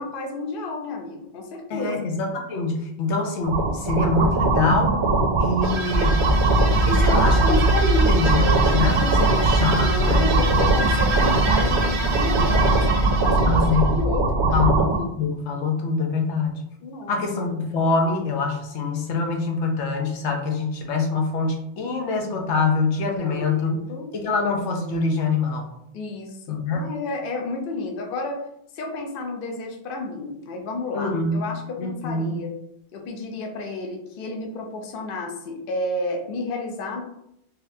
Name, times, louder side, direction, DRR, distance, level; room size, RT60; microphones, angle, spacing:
voice 1, 0.0-2.1 9.7-14.7 16.8-17.5 23.2-24.1 25.9-28.4 28.7-32.5 32.9-37.0, left 2 dB, 60° left, 2 dB, 0.8 m, -31 dB
voice 2, 1.7-4.9 5.4-6.2 6.8-10.3 13.5-13.9 14.5-16.6 17.1-23.8 24.1-25.7 26.5-26.9 30.9-31.4 31.8-32.4, left 3 dB, 90° left, 2 dB, 1.0 m, -24 dB
sound 1, 3.4-15.0, right 3 dB, 55° right, 0.6 m, -22 dB
sound 2, 5.6-14.0, right 4 dB, 75° right, 0.8 m, -29 dB
sound 3, 5.9-14.6, right 1 dB, 75° left, 1.5 m, -23 dB
4.0 x 2.7 x 2.6 m, 0.77 s
omnidirectional pair, 1.1 m